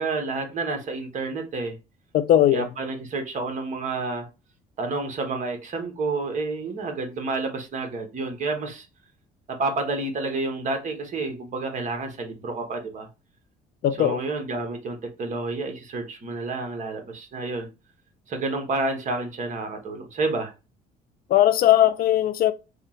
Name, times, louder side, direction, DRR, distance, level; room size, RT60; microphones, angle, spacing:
voice 1, 0.0-1.8 2.5-4.3 4.8-8.9 9.5-13.1 14.0-17.7 18.3-20.5, right 3 dB, 45° right, 1.3 m, -29 dB
voice 2, 2.1-2.6 13.8-14.2 21.3-22.5, left 12 dB, 60° left, 0.5 m, -19 dB
3.5 x 2.4 x 4.3 m
cardioid pair, 110°, 17 cm